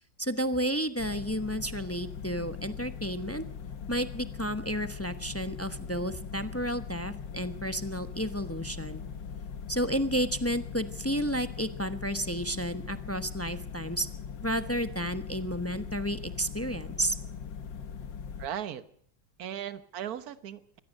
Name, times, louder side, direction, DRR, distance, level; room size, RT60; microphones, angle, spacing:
voice 1, 0.2-3.5 3.9-9.0 9.7-14.1 14.4-17.2, equal, 15° left, 10 dB, 0.6 m, -31 dB
sound 1, 1.0-18.5, left 6 dB, 85° left, 2.1 m, -41 dB
voice 2, 18.4-18.8 19.4-20.8, right 10 dB, 60° right, 12 dB, 1.6 m, -37 dB
24.0 x 17.5 x 6.5 m, 0.62 s
omnidirectional pair, 1.9 m